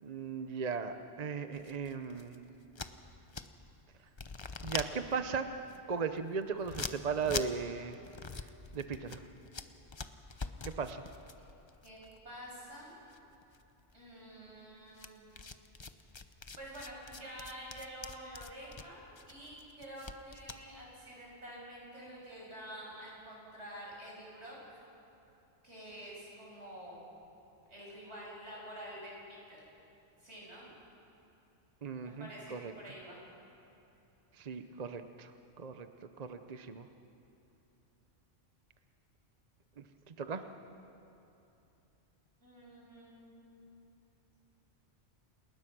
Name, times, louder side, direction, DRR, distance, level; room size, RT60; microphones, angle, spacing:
voice 1, 0.0-2.4 4.6-5.5 5.9-8.0 8.7-9.2 10.6-11.0 31.8-32.7 34.3-35.3 35.6-36.9 39.8-40.4, right 5 dB, 40° right, 9 dB, 0.7 m, -37 dB
sound 1, 1.5-3.8 4.1-12.8 13.1-13.9 15.0-20.6, left 4 dB, 30° left, 0.7 m, -44 dB
voice 2, 11.8-13.0 13.9-15.3 16.6-24.8 25.6-27.1 27.7-29.6 30.2-30.7 32.0-33.2 42.4-43.6, equal, 65° right, -4 dB, 7.3 m, -48 dB
28.5 x 20.0 x 6.1 m, 2.9 s
omnidirectional pair, 1.2 m